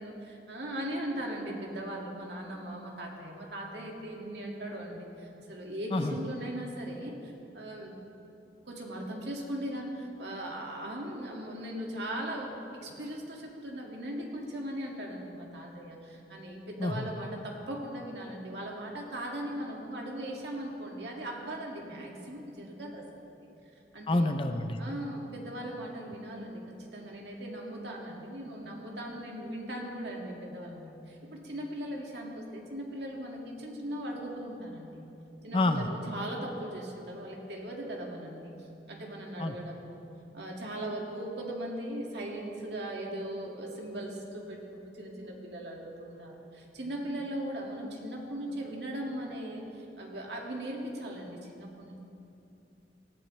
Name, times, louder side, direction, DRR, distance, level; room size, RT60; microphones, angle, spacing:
voice 1, 0.0-8.0 8.7-12.5 12.8-23.3 23.9-24.4 24.8-35.1 35.4-40.1 40.3-52.0, right 1 dB, 65° right, -1 dB, 2.1 m, -39 dB
voice 2, 24.1-24.8 35.5-35.9 39.4-39.5, left 2 dB, 30° left, 7 dB, 0.6 m, -27 dB
18.5 x 14.0 x 3.3 m, 2.8 s
head